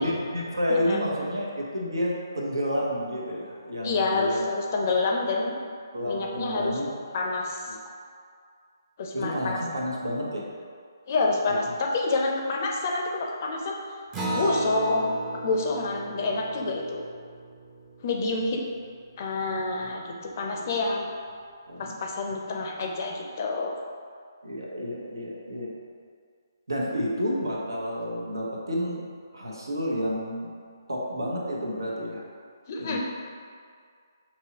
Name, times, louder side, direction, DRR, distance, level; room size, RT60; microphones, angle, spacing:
voice 1, 0.0-4.5 5.9-6.9 7.7-7.8 9.1-10.5 11.5-11.6 20.5-20.7 21.7-22.0 24.4-25.7 26.7-29.1 29.3-30.5 30.9-32.2 32.8-33.0, equal, 80° right, -3 dB, 1.0 m, -30 dB
voice 2, 0.7-1.0 3.8-5.5 6.1-6.7 7.1-7.6 9.0-9.6 11.1-13.8 14.3-15.1 15.4-17.0 18.0-18.6 19.2-21.1 21.8-23.7 32.7-33.0, left 3 dB, 40° left, 0 dB, 0.5 m, -28 dB
Acoustic guitar, 14.1-19.0, right 1 dB, 15° right, 0.6 m, -35 dB
5.3 x 2.9 x 2.9 m, 2.2 s
figure-of-eight pair, 145°, 2 cm